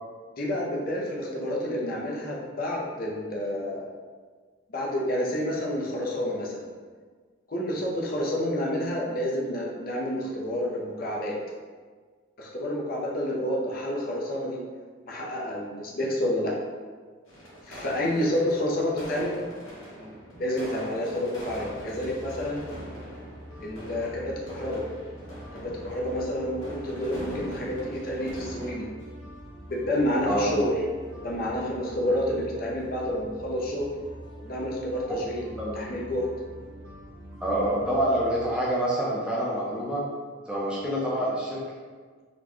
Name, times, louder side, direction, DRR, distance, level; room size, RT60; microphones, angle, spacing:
voice 1, 0.4-3.9 4.7-6.6 7.5-11.4 12.4-14.6 15.0-16.5 17.7-19.4 19.9-20.1 20.4-22.6 23.6-24.8 25.5-28.8 29.7-30.7 31.2-33.9 34.4-35.5 35.7-36.3, left 1 dB, 45° left, -3 dB, 0.6 m, -29 dB
sound 1, 17.3-28.9, equal, 85° left, 1.0 m, -43 dB
sound 2, 21.4-38.4, equal, 90° right, 0.9 m, -45 dB
voice 2, 37.4-40.0 40.5-41.6, right 1 dB, 5° right, -6 dB, 0.5 m, -26 dB
4.0 x 2.2 x 3.0 m, 1.5 s
head